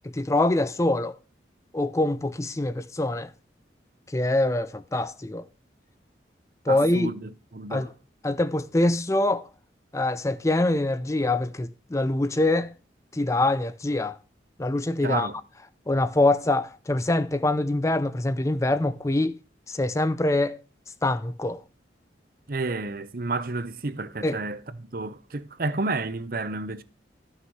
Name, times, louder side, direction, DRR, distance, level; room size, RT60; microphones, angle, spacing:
voice 1, 0.0-1.1 1.7-3.3 4.1-5.5 6.7-7.1 7.7-7.9 8.2-9.5 9.9-12.7 13.1-14.2 14.6-15.3 15.9-19.4 19.7-20.6 21.0-21.6 24.2-24.4, left 2 dB, 15° left, 0.4 m, -24 dB
voice 2, 6.7-7.9 15.0-15.4 22.5-26.8, right 3 dB, 50° right, 0.8 m, -31 dB
12.5 x 6.5 x 4.7 m
head